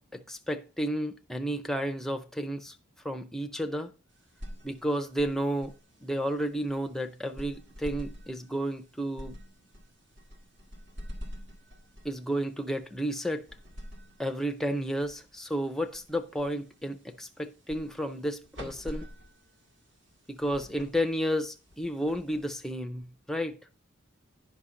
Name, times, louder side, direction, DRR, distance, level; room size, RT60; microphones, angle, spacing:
voice 1, 0.0-2.7 3.0-3.9 4.6-5.7 6.0-9.4 12.0-13.5 14.2-19.1 20.3-23.6, equal, ahead, 0.5 m, -32 dB
sound 1, 4.1-23.0, equal, 60° right, 1.9 m, -48 dB
9.5 x 5.8 x 3.7 m
head